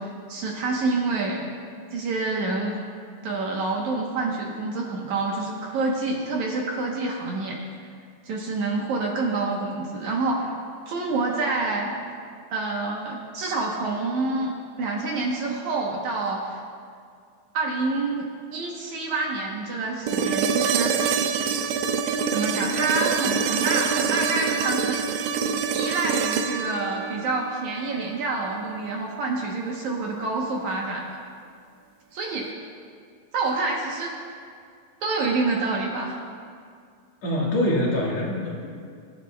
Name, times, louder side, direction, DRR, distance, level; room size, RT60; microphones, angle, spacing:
voice 1, 0.0-1.4 1.9-2.8 3.2-7.6 8.2-10.6 10.9-11.9 12.5-14.5 14.8-16.6 17.5-21.0 22.3-25.1 25.7-31.2 32.1-32.5 33.3-34.1 35.0-36.2, right 3 dB, 65° right, -1 dB, 2.1 m, -27 dB
sound 1, 20.1-28.1 30.2-30.3, right 6 dB, 85° right, 1.7 m, -25 dB
voice 2, 37.2-38.7, left 1 dB, 55° left, -4 dB, 2.6 m, -24 dB
25.0 x 11.0 x 2.3 m, 2.2 s
omnidirectional pair, 4.1 m